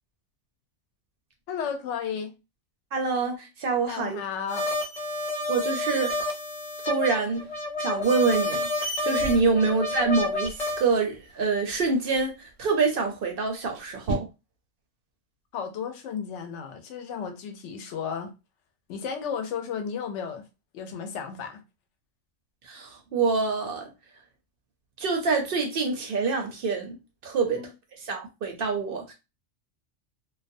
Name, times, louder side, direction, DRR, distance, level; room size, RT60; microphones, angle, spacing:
voice 1, 1.5-2.3 3.9-4.6 9.6-9.7 15.5-18.3 18.9-20.5 20.7-21.6 27.4-27.7, left 7 dB, 70° left, 0.9 m, -33 dB
voice 2, 2.9-4.2 5.5-6.1 6.9-7.5 7.8-14.3 22.6-23.9 25.0-27.0 27.2-27.6 28.0-29.1, right 4 dB, 60° right, 0.6 m, -26 dB
sound 1, 4.5-10.9, left 2 dB, 40° left, 0.6 m, -29 dB
sound 2, 7.3-14.2, right 2 dB, 80° right, 0.9 m, -41 dB
2.3 x 2.2 x 2.5 m
omnidirectional pair, 1.3 m